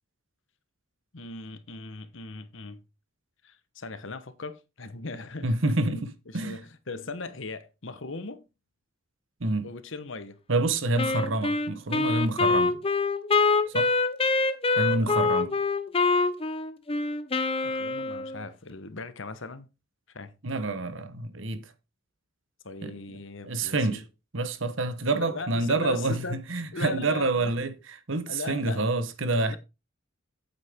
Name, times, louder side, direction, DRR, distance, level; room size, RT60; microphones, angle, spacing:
voice 1, 1.1-2.8 3.4-5.5 5.8-8.4 9.6-10.4 15.0-15.6 17.6-19.7 20.1-20.3 22.6-24.0 25.2-26.4 26.7-27.5 28.3-28.8 29.5-29.6, left 3 dB, 60° left, 1.1 m, -39 dB
voice 2, 5.4-6.6 9.4-9.7 10.5-12.8 13.7-13.9 14.7-15.5 20.4-21.7 22.8-22.9 23.4-24.0 24.3-29.6, right 2 dB, 65° right, 1.1 m, -28 dB
Wind instrument woodwind instrument, 11.0-18.5, left 3 dB, 25° left, 0.7 m, -25 dB
8.7 x 8.2 x 3.6 m
head